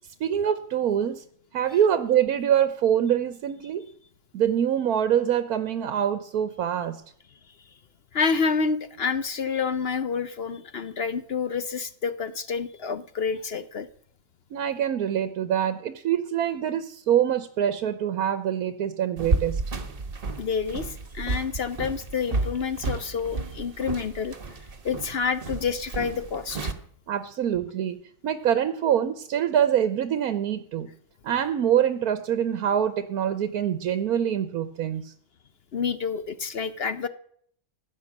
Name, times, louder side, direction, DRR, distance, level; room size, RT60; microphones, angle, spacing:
voice 1, 0.2-1.2 1.5-3.9 4.3-7.0 14.5-19.6 27.1-30.9 31.2-35.1, right 9 dB, 80° right, 11 dB, 1.3 m, -25 dB
voice 2, 8.1-13.9 20.4-24.4 24.8-26.7 35.7-37.1, left 5 dB, 50° left, 12 dB, 0.8 m, -28 dB
sound 1, 19.2-26.7, right 3 dB, 40° right, 1.4 m, -31 dB
16.0 x 10.5 x 7.3 m, 0.64 s
omnidirectional pair, 1.6 m